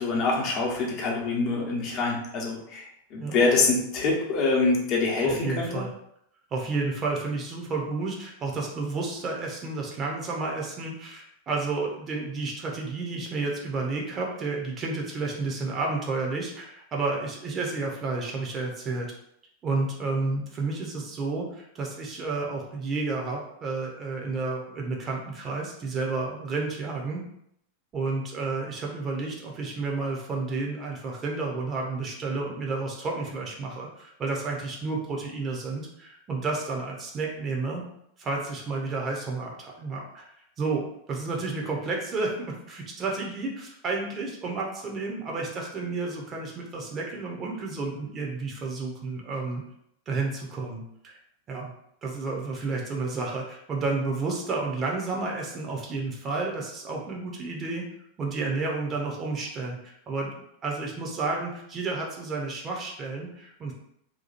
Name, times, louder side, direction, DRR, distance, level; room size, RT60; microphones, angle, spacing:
voice 1, 0.0-5.7, left 3 dB, 40° left, -2 dB, 0.9 m, -25 dB
voice 2, 5.2-5.9 6.5-19.1 19.6-27.2 27.9-37.8 38.2-40.3 40.6-49.6 50.1-51.2 51.5-51.7 52.0-57.8 58.2-63.7, right 3 dB, 25° right, -1 dB, 0.8 m, -31 dB
2.9 x 2.2 x 4.2 m, 0.75 s
figure-of-eight pair, 90°, 0 cm